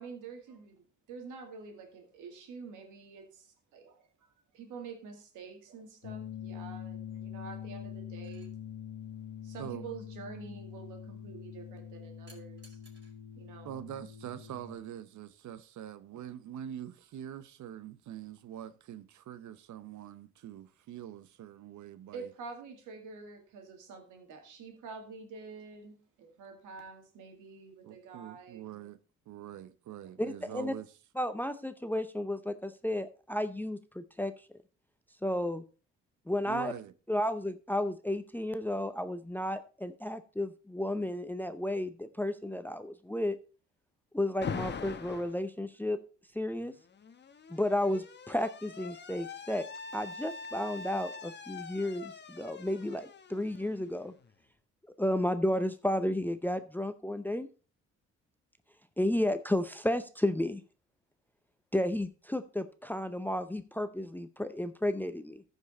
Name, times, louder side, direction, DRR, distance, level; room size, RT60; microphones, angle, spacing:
voice 1, 0.0-4.3 4.5-8.5 9.4-12.8 13.4-13.8 22.1-28.7, right 5 dB, 90° right, 2.2 m, -47 dB
sound 1, 6.0-14.8, left 9 dB, 60° left, 1.3 m, -44 dB
sound 2, 8.2-8.5 12.3-13.1 14.5-14.7, right 3 dB, 35° right, 4.8 m, -60 dB
voice 2, 13.6-22.3 27.8-29.0 29.3-30.9 36.5-36.9, right 10 dB, 70° right, 0.8 m, -44 dB
voice 3, 30.2-30.7 31.2-34.3 35.2-35.6 36.3-36.7 37.1-43.4 44.1-46.0 46.3-46.7 47.5-49.7 49.9-54.1 55.0-57.5 59.0-60.6 61.7-65.4, left 1 dB, 5° left, 0.6 m, -32 dB
Alarm, 44.4-45.4 46.6-54.3, left 5 dB, 35° left, 1.0 m, -43 dB
14.0 x 5.4 x 4.2 m
cardioid pair, 90°, 30 cm